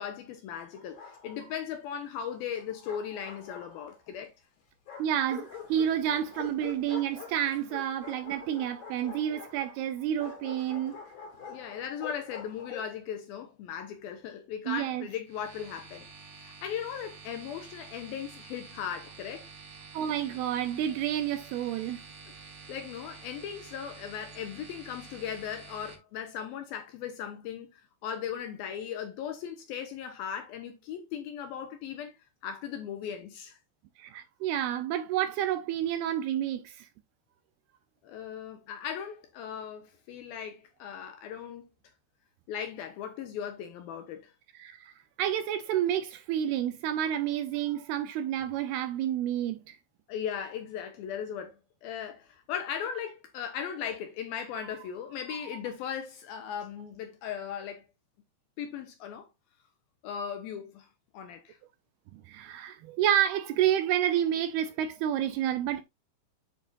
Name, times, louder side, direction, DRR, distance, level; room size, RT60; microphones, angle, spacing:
voice 1, 0.0-4.3 11.5-16.1 16.3-19.5 22.7-32.2 32.4-33.6 38.0-41.7 42.5-44.3 50.1-57.9 58.6-59.3 60.0-60.9 61.1-61.6, left 8 dB, 75° left, 2.4 m, -38 dB
Bark, 0.7-1.6 2.5-4.1 4.9-13.0, left 6 dB, 45° left, 3.0 m, -46 dB
voice 2, 5.0-11.0 14.7-15.1 19.9-22.0 34.0-36.9 44.5-44.9 45.2-49.8 62.3-65.8, right 10 dB, 80° right, 2.4 m, -29 dB
sound 1, 15.3-25.9, right 4 dB, 50° right, 2.6 m, -49 dB
8.3 x 6.8 x 2.6 m
omnidirectional pair, 5.0 m